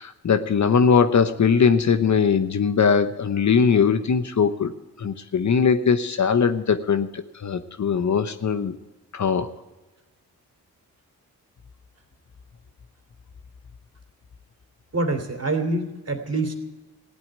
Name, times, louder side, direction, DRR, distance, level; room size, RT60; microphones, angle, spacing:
voice 1, 0.0-4.7 5.0-8.8 9.1-9.5, left 6 dB, 45° left, 9 dB, 1.0 m, -20 dB
voice 2, 14.9-16.6, right 2 dB, 40° right, 5 dB, 3.0 m, -25 dB
16.0 x 8.5 x 8.9 m, 1.1 s
supercardioid pair, 50°, 39 cm